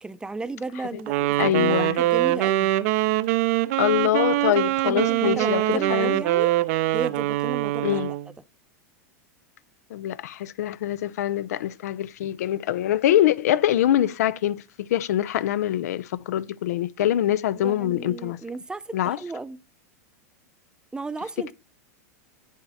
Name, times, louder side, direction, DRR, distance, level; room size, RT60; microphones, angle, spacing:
voice 1, 0.0-2.7 4.8-6.5 6.9-8.0 17.6-19.6 20.9-21.5, right 3 dB, 10° right, 0.6 m, -34 dB
Wind instrument woodwind instrument, 1.1-8.3, right 16 dB, 60° right, 0.5 m, -23 dB
voice 2, 1.4-2.0 3.8-6.2 7.8-8.1 9.9-18.4 18.9-19.2, left 12 dB, 75° left, 0.4 m, -24 dB
7.9 x 7.3 x 4.1 m
hypercardioid pair, 110°, 9 cm